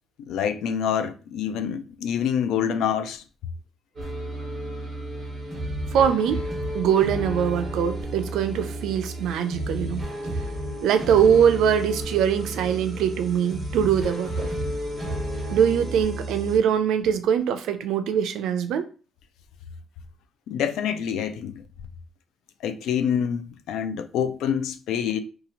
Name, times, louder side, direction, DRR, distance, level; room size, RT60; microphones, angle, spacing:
voice 1, 0.3-3.2 20.5-21.6 22.6-25.2, left 8 dB, 80° left, 0.3 m, -26 dB
sound 1, 4.0-16.6, right 1 dB, 25° right, 0.9 m, -32 dB
voice 2, 5.9-6.4 6.7-10.0 10.8-14.5 15.5-18.9, right 8 dB, 75° right, 0.4 m, -22 dB
2.8 x 2.3 x 2.8 m
cardioid pair, 175°, 0 cm